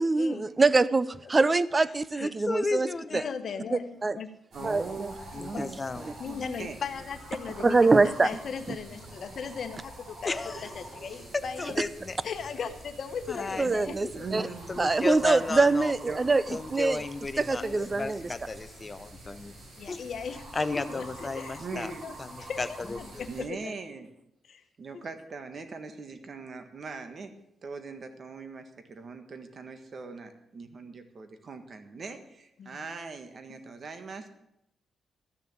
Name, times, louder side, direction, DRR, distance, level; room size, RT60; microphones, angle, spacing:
voice 1, 0.0-2.9 3.1-3.2 3.7-4.2 4.6-5.1 5.6-5.7 7.6-8.3 8.7-8.8 13.6-14.4 14.8-16.4 16.7-17.0 17.4-18.2, right 3 dB, 25° right, 17 dB, 0.5 m, -24 dB
voice 2, 2.2-3.3 3.6-4.0 5.3-6.1 10.2-10.6 11.6-12.2 13.3-13.8 14.4-15.9 16.5-17.6 17.9-19.5 19.9-20.0 20.5-21.9 22.2-23.2, left 3 dB, 25° left, 12 dB, 0.8 m, -34 dB
voice 3, 3.1-3.8 4.1-4.3 4.6-4.7 5.5-5.6 6.2-7.8 8.0-10.4 10.6-11.8 12.2-14.2 17.6-17.8 19.8-22.1 22.5-22.6 23.0-23.8 24.5-24.6 24.9-25.0 32.6-32.8 33.5-33.6, left 6 dB, 55° left, 7 dB, 1.4 m, -38 dB
voice 4, 4.5-6.8 14.1-14.9 16.1-16.2 21.6-22.1 23.3-24.1 24.8-27.3 27.6-34.3, right 4 dB, 45° right, 8 dB, 1.6 m, -41 dB
sound 1, 4.5-23.4, right 1 dB, 70° right, 5.4 m, -46 dB
13.0 x 6.7 x 8.6 m, 0.81 s
cardioid pair, 120°, 0 cm